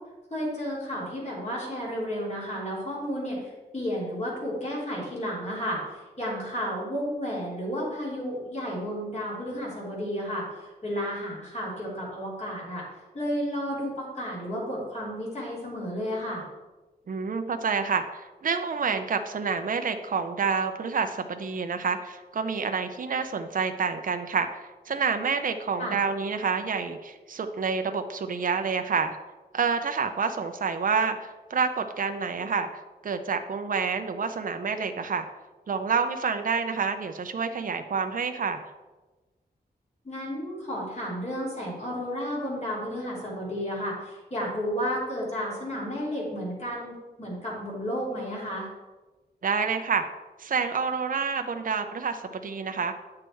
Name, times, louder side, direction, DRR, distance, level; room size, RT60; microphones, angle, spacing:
voice 1, 0.3-12.8 13.1-16.4 25.8-26.0 40.0-46.9 47.2-48.7, equal, 40° left, -5 dB, 3.4 m, -32 dB
voice 2, 17.1-29.2 29.5-32.7 33.0-35.3 35.7-38.6 49.4-50.0 50.4-52.9, right 5 dB, 55° right, 7 dB, 0.6 m, -28 dB
9.6 x 6.3 x 4.5 m, 1.2 s
wide cardioid pair, 120°, 17 cm